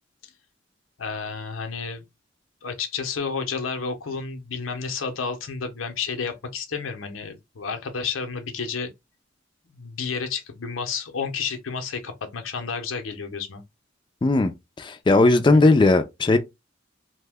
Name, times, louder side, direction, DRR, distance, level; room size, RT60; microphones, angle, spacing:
voice 1, 1.0-2.0 2.6-8.9 9.7-13.6 15.5-15.8, left 5 dB, 90° left, 0.7 m, -31 dB
voice 2, 14.8-16.4, left 2 dB, 25° left, 0.3 m, -17 dB
2.8 x 2.1 x 3.4 m
head